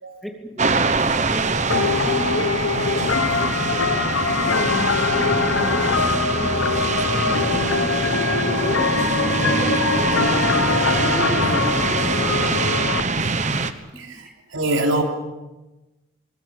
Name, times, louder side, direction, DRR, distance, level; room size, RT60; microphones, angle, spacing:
voice 1, 0.2-0.7 1.3-1.5 2.0-2.4 3.4-3.5 3.9-13.2 13.9-14.3, equal, ahead, 3 dB, 2.1 m, -35 dB
sound 1, 0.6-13.7, right 3 dB, 35° right, 1.1 m, -24 dB
sound 2, 1.7-13.0, left 4 dB, 75° left, 1.2 m, -22 dB
voice 2, 14.0-15.0, right 1 dB, 75° right, 3 dB, 3.5 m, -24 dB
22.5 x 20.0 x 8.5 m, 1.1 s
head